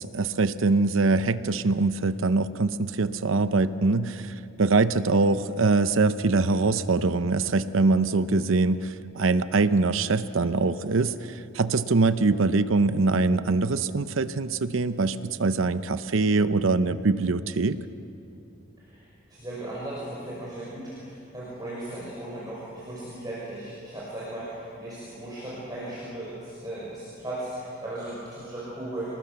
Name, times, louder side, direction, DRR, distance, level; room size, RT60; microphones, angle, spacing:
voice 1, 0.0-17.8, right 3 dB, 75° right, 12 dB, 0.7 m, -23 dB
voice 2, 18.8-29.1, right 1 dB, 20° right, -8 dB, 5.8 m, -37 dB
29.0 x 19.5 x 7.0 m, 2.9 s
head